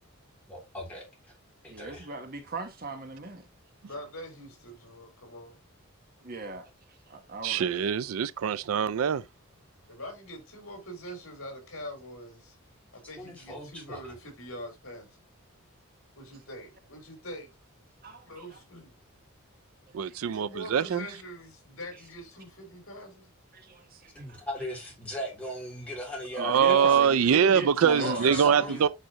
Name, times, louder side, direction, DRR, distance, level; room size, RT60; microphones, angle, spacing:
voice 1, 0.5-1.3 1.6-2.1 13.2-14.0 24.2-27.6 27.9-28.8, equal, 5° left, 3.6 m, -38 dB
voice 2, 1.7-3.5 6.2-7.6 18.0-18.6 20.0-20.1 21.9-22.0 23.5-24.4 26.4-28.3, right 2 dB, 40° right, 1.1 m, -38 dB
voice 3, 3.8-5.6 6.2-6.3 7.1-7.2 9.9-12.6 12.9-15.2 16.2-17.6 18.2-18.9 20.3-23.3 27.9-28.9, equal, 70° left, 4.3 m, -43 dB
voice 4, 7.4-9.2 19.9-21.1 26.4-28.9, right 7 dB, 75° right, 0.4 m, -24 dB
9.0 x 4.8 x 2.9 m
head